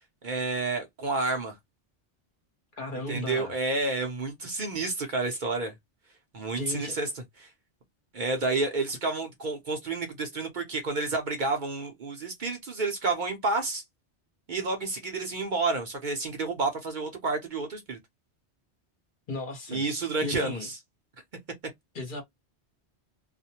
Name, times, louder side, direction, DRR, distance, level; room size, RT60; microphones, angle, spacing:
voice 1, 0.2-1.6 3.1-5.7 6.3-7.1 7.4-7.5 8.1-13.8 14.5-18.0 19.7-20.8, right 3 dB, 50° right, 0.8 m, -30 dB
voice 2, 2.8-3.5 6.5-7.0 19.3-19.8 20.2-20.7 21.9-22.2, left 2 dB, 50° left, 1.0 m, -35 dB
2.4 x 2.1 x 2.7 m
omnidirectional pair, 1.1 m